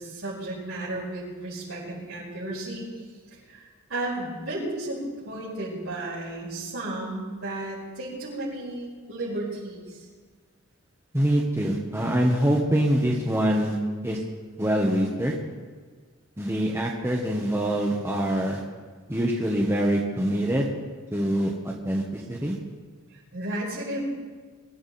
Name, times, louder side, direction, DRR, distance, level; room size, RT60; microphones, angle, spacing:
voice 1, 0.0-3.0 3.3-5.0 5.2-10.1 23.1-24.0, right 1 dB, 70° right, -11 dB, 5.4 m, -34 dB
voice 2, 11.1-13.8 14.0-14.2 14.6-15.3 16.4-18.6 19.1-20.7 21.1-22.6, right 1 dB, 10° right, -2 dB, 1.2 m, -24 dB
23.0 x 12.5 x 4.2 m, 1.5 s
head